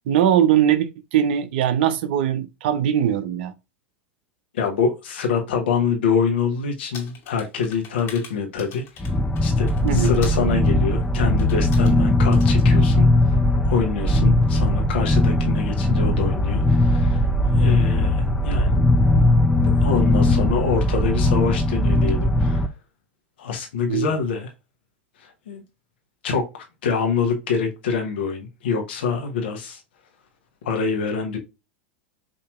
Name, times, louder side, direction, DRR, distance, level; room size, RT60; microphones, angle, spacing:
voice 1, 0.1-3.5 9.8-10.1 23.9-24.1, right 10 dB, 65° right, 0.6 m, -20 dB
voice 2, 4.5-8.8 9.4-13.4 13.6-17.2 17.5-18.7 19.8-22.7 23.4-24.5 25.2-25.6 26.2-29.8 30.6-31.4, left 5 dB, 70° left, 1.3 m, -25 dB
sound 1, 6.9-10.5 11.4-12.0 12.3-12.7, left 6 dB, 40° left, 1.6 m, -42 dB
sound 2, 9.0-22.7, left 1 dB, 10° left, 0.5 m, -19 dB
5.0 x 2.8 x 2.4 m
hypercardioid pair, 95°, 6 cm